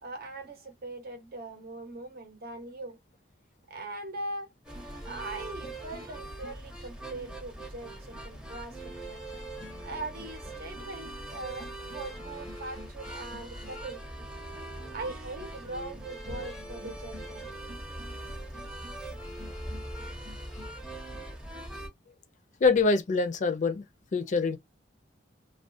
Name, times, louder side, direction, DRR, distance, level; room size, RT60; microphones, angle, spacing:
voice 1, 0.0-3.0 3.7-4.5 5.0-9.2 9.8-14.0 14.9-17.5, right 2 dB, 55° right, 0.8 m, -41 dB
sound 1, 4.6-21.9, right 1 dB, 5° right, 0.6 m, -41 dB
voice 2, 22.6-23.8 24.1-24.6, left 4 dB, 45° left, 0.4 m, -24 dB
2.4 x 2.2 x 2.5 m
head